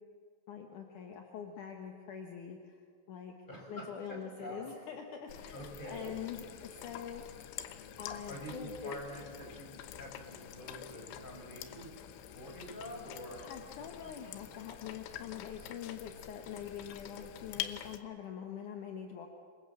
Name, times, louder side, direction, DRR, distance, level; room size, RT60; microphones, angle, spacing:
voice 1, 0.5-2.8 3.1-3.3 3.7-7.2 8.0-9.0 13.4-19.3, left 8 dB, 65° left, 3 dB, 2.0 m, -44 dB
voice 2, 3.5-4.7 5.5-6.2 8.3-13.5, equal, 10° left, 0 dB, 5.5 m, -46 dB
sound 1, 5.3-18.0, left 11 dB, 80° left, 3.6 m, -47 dB
27.0 x 24.0 x 7.2 m, 2.1 s
omnidirectional pair, 5.5 m